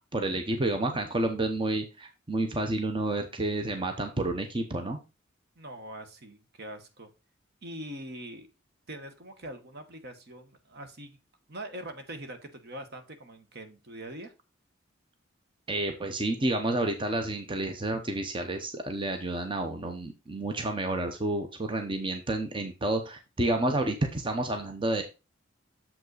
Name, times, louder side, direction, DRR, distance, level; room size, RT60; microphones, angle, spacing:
voice 1, 0.1-5.0 15.7-25.0, right 2 dB, 25° right, 5 dB, 0.8 m, -30 dB
voice 2, 5.6-7.1 7.6-8.5 8.9-11.2 11.5-14.3, right 1 dB, 55° right, 8 dB, 1.2 m, -43 dB
7.2 x 5.4 x 4.0 m, 0.28 s
head